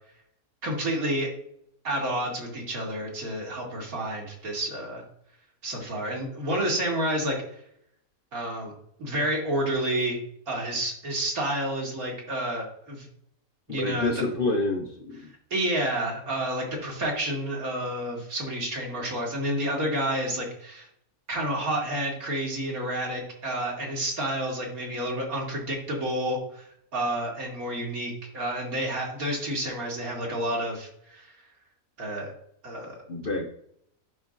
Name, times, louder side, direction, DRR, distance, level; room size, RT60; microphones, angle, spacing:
voice 1, 0.6-1.3 1.8-5.0 5.6-7.4 8.3-8.7 9.0-10.2 10.5-13.1 13.7-14.2 15.5-20.9 21.3-26.6 26.9-31.3 32.0-32.3 32.6-33.0, right 1 dB, 80° right, -2 dB, 2.4 m, -29 dB
voice 2, 13.7-15.3 33.1-33.5, left 2 dB, 45° left, 3 dB, 0.8 m, -28 dB
11.5 x 4.2 x 2.5 m, 0.69 s
omnidirectional pair, 1.5 m